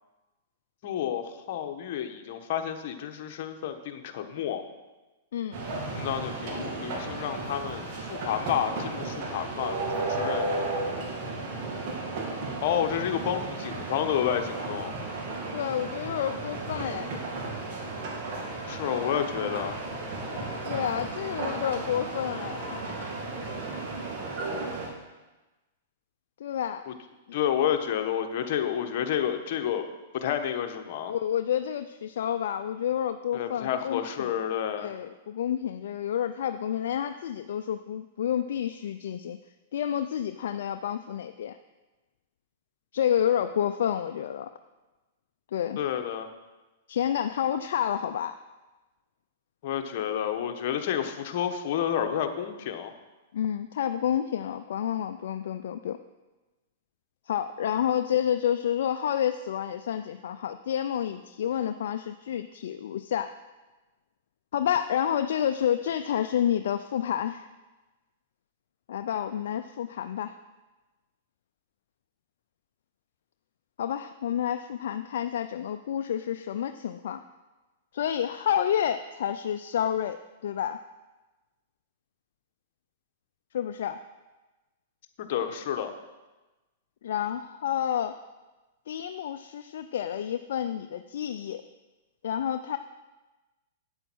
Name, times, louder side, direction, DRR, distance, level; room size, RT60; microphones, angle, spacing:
voice 1, 0.8-4.6 5.9-10.5 12.6-14.9 18.7-19.8 26.9-27.0 27.3-29.8 30.2-31.2 33.3-35.0 45.8-46.3 49.6-52.9 85.3-85.9, left 9 dB, 55° left, 5 dB, 1.2 m, -30 dB
sound 1, 5.5-24.9, right 2 dB, 50° right, 2.5 m, -34 dB
voice 2, 15.5-17.2 20.6-22.8 26.4-26.9 31.1-34.3 34.8-39.4 39.7-41.6 42.9-44.5 45.5-45.8 46.9-48.4 53.3-56.0 57.3-63.3 64.5-67.5 68.9-70.4 73.8-77.2 77.9-80.2 80.4-80.8 83.5-84.0 87.0-88.1 88.9-91.6 92.2-92.8, left 9 dB, 70° left, 8 dB, 0.4 m, -29 dB
9.0 x 7.9 x 6.2 m, 1.1 s
hypercardioid pair, 130°, 0 cm